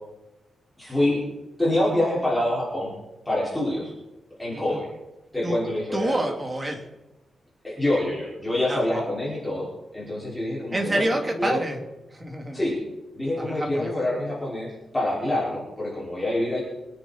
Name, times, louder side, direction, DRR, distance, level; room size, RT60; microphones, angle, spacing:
voice 1, 0.8-1.2 1.6-2.9 3.3-3.9 4.4-4.9 5.3-6.2 7.6-9.7 9.9-11.6 12.5-12.8 13.1-16.6, left 1 dB, 10° left, -8 dB, 5.4 m, -26 dB
voice 2, 5.9-6.9 8.7-9.0 10.7-11.8 12.1-12.6 13.4-13.9, right 1 dB, 20° right, 2 dB, 2.6 m, -28 dB
26.5 x 9.6 x 4.3 m, 1.0 s
wide cardioid pair, 140°, 0 cm